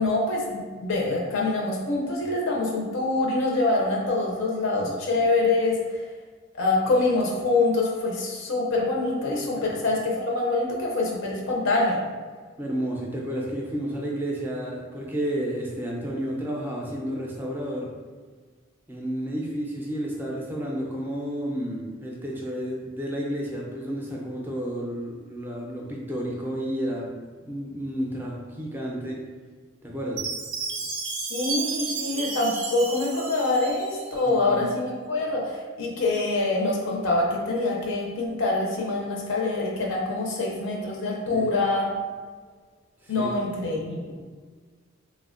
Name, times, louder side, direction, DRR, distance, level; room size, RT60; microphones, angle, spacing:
voice 1, 0.0-6.0 6.5-12.0 31.3-41.9 43.1-44.1, left 2 dB, 75° left, -1 dB, 0.5 m, -25 dB
voice 2, 12.6-17.9 18.9-27.1 27.5-29.2 29.8-30.2 34.3-34.7 41.3-41.4 43.0-43.3, equal, 10° right, -3 dB, 0.4 m, -31 dB
Chime, 30.2-34.3, right 4 dB, 75° right, 0.4 m, -32 dB
3.2 x 2.1 x 2.4 m, 1.5 s
head